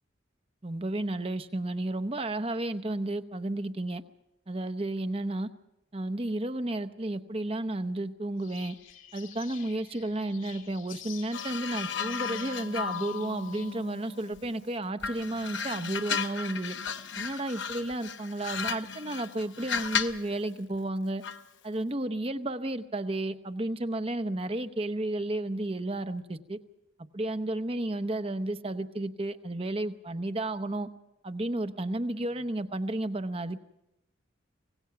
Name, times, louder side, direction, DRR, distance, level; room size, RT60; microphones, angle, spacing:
voice 1, 0.6-4.0 4.5-5.5 5.9-8.8 9.1-16.8 17.2-21.2 21.6-26.6 27.1-30.9 31.2-33.6, right 1 dB, 30° right, 10 dB, 0.8 m, -32 dB
sound 1, 8.4-13.7, left 10 dB, 85° left, 2.3 m, -49 dB
sound 2, 11.3-14.6 15.0-20.3 21.2-21.5, left 6 dB, 70° left, 0.9 m, -35 dB
25.0 x 18.0 x 5.8 m, 0.85 s
head